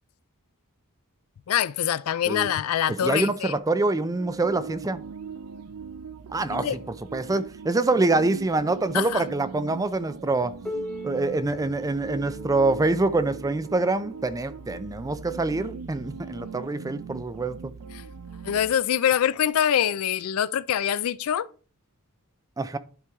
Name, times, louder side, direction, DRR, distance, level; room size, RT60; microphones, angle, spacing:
voice 1, 1.5-3.5 6.5-6.8 8.9-9.2 17.9-18.0 18.4-21.5, left 9 dB, 70° left, 0.4 m, -24 dB
voice 2, 2.9-5.0 6.3-6.8 7.1-10.5 11.0-17.7 22.6-22.8, right 2 dB, 15° right, 0.4 m, -25 dB
sound 1, 4.0-18.7, right 5 dB, 85° right, 0.4 m, -40 dB
Piano, 10.6-16.0 16.8-16.9 17.4-17.5 18.3-18.4 19.4-19.5, left 1 dB, 5° left, 1.1 m, -41 dB
11.0 x 4.6 x 3.6 m
head